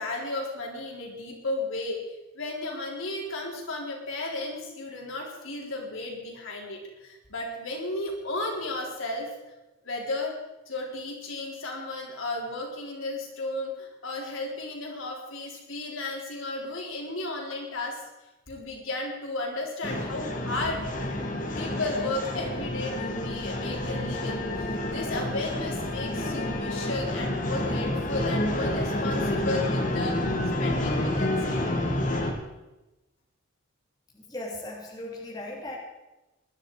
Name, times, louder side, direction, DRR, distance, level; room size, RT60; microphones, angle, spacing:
voice 1, 0.0-2.0 2.3-9.3 9.8-10.3 10.7-18.0 18.5-21.2 21.6-30.2 30.6-31.6, left 2 dB, 80° left, -1 dB, 4.1 m, -34 dB
sound 1, 19.8-32.3, left 1 dB, 40° left, 1.9 m, -29 dB
voice 2, 34.1-35.8, left 1 dB, 20° left, -3 dB, 2.8 m, -37 dB
20.0 x 11.5 x 4.9 m, 1.0 s
head